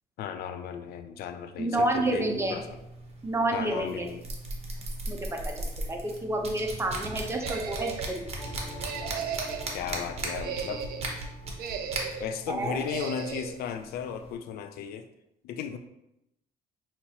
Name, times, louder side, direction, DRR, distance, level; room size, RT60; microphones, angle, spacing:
voice 1, 0.2-2.8 3.5-4.2 9.7-10.9 12.2-15.1 15.4-15.8, left 8 dB, 70° left, 9 dB, 0.4 m, -35 dB
voice 2, 1.6-2.6 3.2-4.1 5.1-5.2 5.9-7.9 12.5-12.8, right 2 dB, 15° right, 2 dB, 0.7 m, -29 dB
sound 1, 1.7-14.3, right 2 dB, 35° right, 1.0 m, -38 dB
sound 2, 7.3-8.2 8.8-9.8 10.2-11.1 11.6-12.3 12.9-13.6, right 7 dB, 60° right, 0.5 m, -36 dB
sound 3, 8.3-13.7, left 1 dB, 25° left, 1.5 m, -47 dB
5.8 x 2.9 x 2.8 m, 0.85 s
cardioid pair, 110°, 17 cm